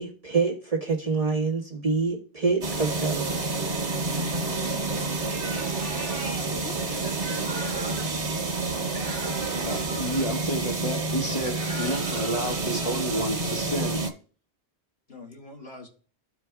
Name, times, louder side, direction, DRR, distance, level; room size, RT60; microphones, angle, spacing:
voice 1, 0.0-3.3, right 4 dB, 35° right, -2 dB, 1.5 m, -26 dB
sound 1, 2.6-14.1, right 3 dB, 80° right, 1.7 m, -29 dB
sound 2, 5.2-6.5 7.2-8.2 8.9-10.3 11.4-12.6, right 2 dB, 55° right, 1.3 m, -40 dB
voice 2, 6.3-7.5 7.8-8.1 15.1-15.9, left 2 dB, 60° left, -1 dB, 2.5 m, -43 dB
voice 3, 9.7-14.0, right 1 dB, 30° left, 1 dB, 1.4 m, -30 dB
14.0 x 4.9 x 2.3 m, 0.41 s
omnidirectional pair, 1.2 m